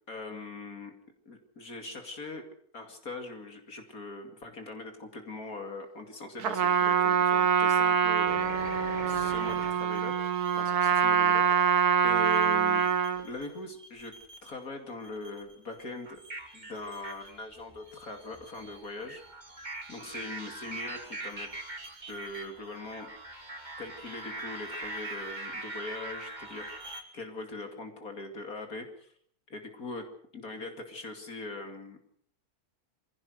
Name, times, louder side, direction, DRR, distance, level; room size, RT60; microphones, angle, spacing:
voice 1, 0.1-0.9 1.3-2.4 2.7-8.6 9.1-10.1 10.6-12.8 13.2-14.1 14.4-16.2 16.5-19.2 19.9-21.5 22.1-23.1 23.8-26.7 27.1-29.1 29.5-30.0 30.3-32.0, left 2 dB, 65° left, 5 dB, 3.1 m, -41 dB
Trumpet, 6.4-13.2, right 7 dB, 85° right, 1.8 m, -25 dB
sound 1, 8.3-10.6 12.2-13.5 13.8-14.6 15.0-27.0, right 2 dB, 30° right, 3.1 m, -43 dB
24.0 x 16.5 x 8.0 m, 0.62 s
omnidirectional pair, 1.6 m